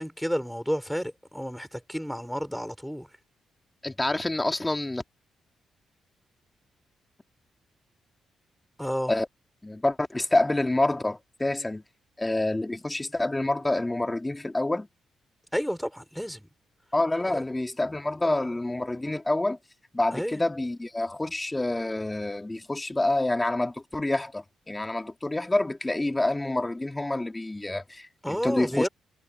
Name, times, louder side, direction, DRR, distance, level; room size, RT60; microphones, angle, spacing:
voice 1, 0.0-3.1 8.8-9.1 15.5-16.5 20.1-20.4 28.2-28.9, equal, ahead, 6.4 m, -31 dB
voice 2, 3.8-5.0 9.1-9.3 9.6-11.8 12.2-14.9 16.9-19.6 19.9-28.9, left 2 dB, 20° left, 2.7 m, -27 dB
supercardioid pair, 50°, 0 cm